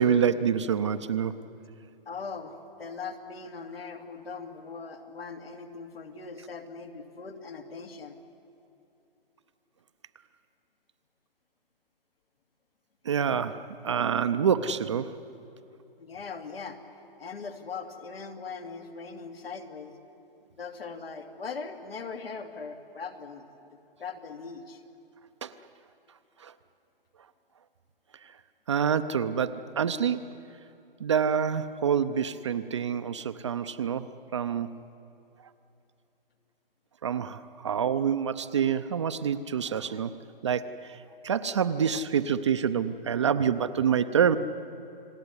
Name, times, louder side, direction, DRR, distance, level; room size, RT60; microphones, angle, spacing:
voice 1, 0.0-1.5 13.0-15.2 25.4-25.5 26.4-26.5 28.2-28.3 28.7-30.3 31.0-34.1 34.3-34.7 37.0-40.1 40.4-44.4, right 7 dB, 30° right, 10 dB, 0.6 m, -27 dB
voice 2, 2.1-8.2 16.0-16.8 17.2-19.9 20.5-23.7 24.0-24.8, left 5 dB, 80° left, 5 dB, 2.8 m, -40 dB
30.0 x 20.0 x 9.7 m, 2.8 s
hypercardioid pair, 160°, 29 cm